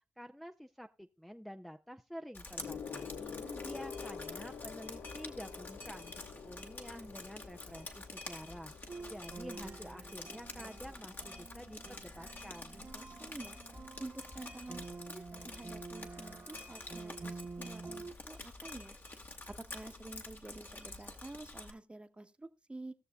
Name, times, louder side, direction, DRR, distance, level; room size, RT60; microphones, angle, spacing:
voice 1, 0.0-3.1 3.6-12.8, equal, ahead, 0.5 m, -49 dB
Drip, 2.3-21.7, left 2 dB, 50° left, 1.8 m, -48 dB
Gong, 2.6-12.4 13.3-13.6, left 6 dB, 75° left, 0.6 m, -49 dB
voice 2, 3.2-3.7 12.7-13.6 14.0-19.0 19.5-22.9, right 2 dB, 25° right, 1.0 m, -49 dB
sound 1, 8.9-18.1, right 4 dB, 55° right, 1.2 m, -49 dB
18.5 x 6.7 x 2.3 m
cardioid pair, 50°, 5 cm